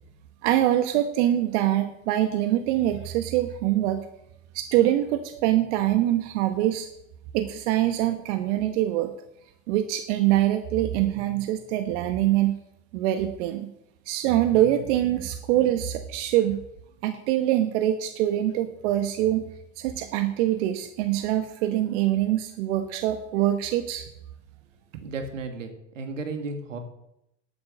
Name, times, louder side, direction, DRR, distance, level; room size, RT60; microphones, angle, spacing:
voice 1, 0.4-4.0 4.5-6.9 7.3-9.1 9.7-12.6 12.9-13.7 14.1-16.6 17.0-19.4 19.8-24.0, right 13 dB, 65° right, 8 dB, 1.2 m, -24 dB
voice 2, 25.0-26.8, right 3 dB, 90° right, 6 dB, 2.1 m, -34 dB
12.0 x 8.7 x 6.4 m, 0.82 s
hypercardioid pair, 90°, 37 cm